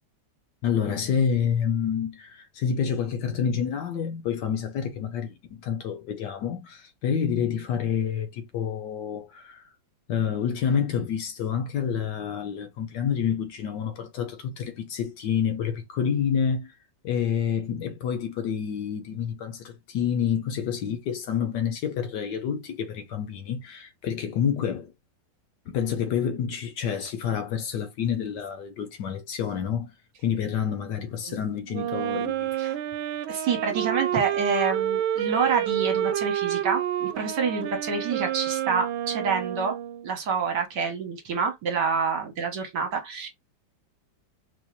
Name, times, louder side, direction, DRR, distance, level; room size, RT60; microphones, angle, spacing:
voice 1, 0.6-9.7 10.1-16.7 17.0-24.9 25.7-29.9 30.2-32.7, left 7 dB, 70° left, 1.2 m, -28 dB
Wind instrument woodwind instrument, 31.7-40.1, right 11 dB, 85° right, 1.4 m, -29 dB
voice 2, 33.3-39.7 40.0-43.3, right 5 dB, 65° right, 1.6 m, -27 dB
4.5 x 2.7 x 2.2 m
omnidirectional pair, 2.2 m